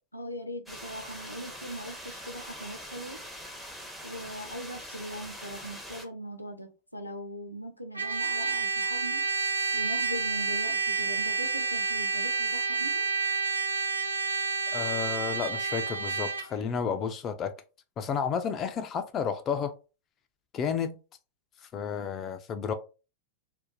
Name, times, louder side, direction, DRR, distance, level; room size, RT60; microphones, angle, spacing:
voice 1, 0.1-3.2 4.0-9.3 9.7-13.1, equal, 85° left, 0.5 m, -40 dB
sound 1, 0.7-6.0, equal, ahead, 0.7 m, -43 dB
Trumpet, 8.0-16.5, right 5 dB, 80° right, 0.4 m, -29 dB
voice 2, 14.7-17.5 18.0-19.7 20.5-21.0 21.7-22.7, left 7 dB, 30° left, 0.3 m, -31 dB
2.5 x 2.2 x 4.0 m
figure-of-eight pair, 90°, 0 cm